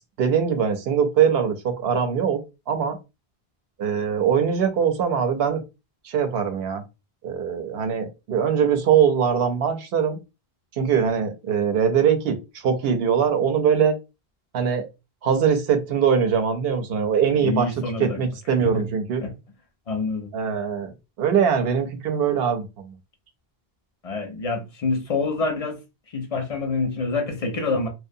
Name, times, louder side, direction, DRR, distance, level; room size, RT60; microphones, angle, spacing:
voice 1, 0.2-2.4 2.7-3.0 3.8-5.6 6.0-6.8 7.2-10.2 10.8-12.4 12.6-13.9 14.5-14.9 15.2-17.7 18.0-19.2 20.3-20.9 21.2-22.9, right 7 dB, 75° right, 0.8 m, -22 dB
voice 2, 17.4-18.2 18.6-18.9 19.2-19.3 19.9-20.3 24.0-25.8 26.1-27.9, left 3 dB, 50° left, 0.5 m, -26 dB
2.6 x 2.1 x 2.5 m
omnidirectional pair, 1.0 m